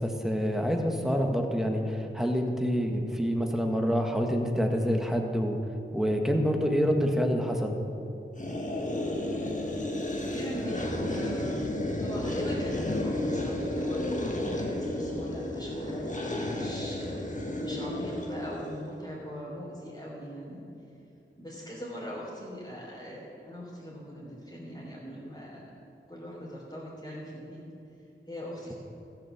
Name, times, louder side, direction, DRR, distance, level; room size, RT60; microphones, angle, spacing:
voice 1, 0.0-5.6 5.9-7.8, equal, ahead, 2 dB, 1.5 m, -27 dB
sound 1, 8.4-18.8, left 1 dB, 35° left, 1.4 m, -32 dB
voice 2, 10.3-11.7 12.0-20.6 21.4-25.7 26.1-27.6 28.3-28.7, equal, 20° left, -8 dB, 3.3 m, -41 dB
14.5 x 7.0 x 7.3 m, 2.8 s
wide cardioid pair, 45°, 21 cm